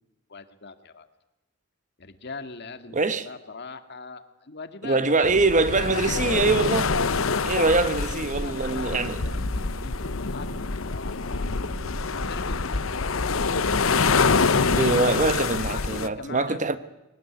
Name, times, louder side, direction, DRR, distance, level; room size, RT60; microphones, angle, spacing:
voice 1, 0.3-1.1 2.0-6.9 7.8-11.5 12.3-13.5 15.4-16.8, left 4 dB, 55° left, 1.9 m, -41 dB
voice 2, 2.9-3.3 4.8-6.9 7.4-9.2 14.3-16.8, right 3 dB, 40° right, 1.2 m, -23 dB
sound 1, 5.2-16.1, left 4 dB, 75° left, 0.9 m, -26 dB
sound 2, 6.0-14.4, right 1 dB, 60° right, 1.3 m, -38 dB
23.0 x 19.0 x 9.8 m
head